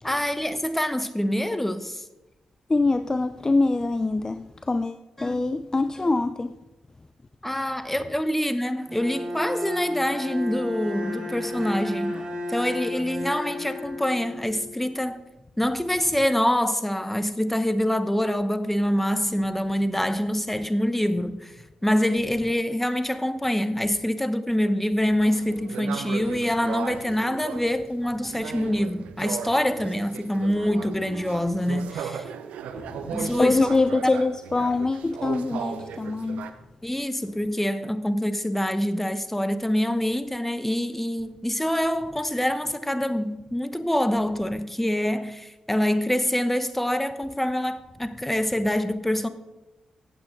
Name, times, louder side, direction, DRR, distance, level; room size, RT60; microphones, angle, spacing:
voice 1, 0.0-2.0 5.2-5.5 7.4-12.2 12.5-15.2 15.6-21.5 21.8-32.3 33.1-33.8 36.8-49.3, left 1 dB, 10° left, 1.0 m, -25 dB
voice 2, 2.7-6.6 32.7-36.5, left 3 dB, 30° left, 0.5 m, -24 dB
Bowed string instrument, 8.9-14.8, left 1 dB, 50° right, 3.7 m, -32 dB
sound 1, 25.2-36.5, right 7 dB, 80° right, 0.7 m, -37 dB
15.0 x 8.8 x 3.8 m
hypercardioid pair, 40°, 2 cm